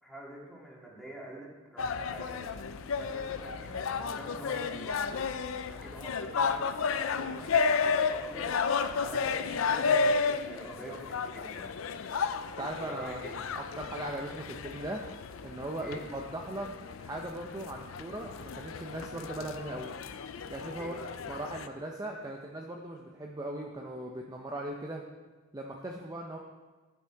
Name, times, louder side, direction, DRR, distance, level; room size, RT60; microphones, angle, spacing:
voice 1, 0.0-2.5 2.9-5.3 5.7-8.5 9.0-12.1 12.9-13.4 15.8-16.0 20.8-21.1, right 1 dB, ahead, -4 dB, 2.1 m, -46 dB
sound 1, 1.8-21.7, left 5 dB, 75° left, 0.5 m, -33 dB
voice 2, 12.6-13.2 13.6-15.0 15.4-16.7 17.0-19.9 20.5-20.9 21.3-25.0 25.5-26.4, right 1 dB, 20° right, 0 dB, 0.6 m, -38 dB
10.0 x 7.3 x 4.6 m, 1.3 s
head